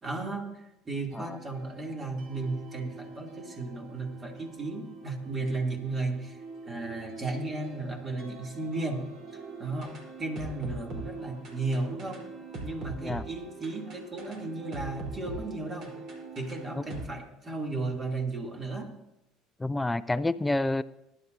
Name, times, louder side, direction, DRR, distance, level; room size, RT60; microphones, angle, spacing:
voice 1, 0.0-6.4 6.6-9.0 9.3-12.3 12.6-16.0 16.3-18.9, right 3 dB, 30° right, 1 dB, 2.8 m, -34 dB
sound 1, 1.1-17.0, right 3 dB, 55° right, 3.8 m, -43 dB
voice 2, 19.6-20.8, left 2 dB, 10° left, 14 dB, 0.4 m, -28 dB
20.0 x 11.0 x 2.7 m, 0.88 s
supercardioid pair, 85°, 0 cm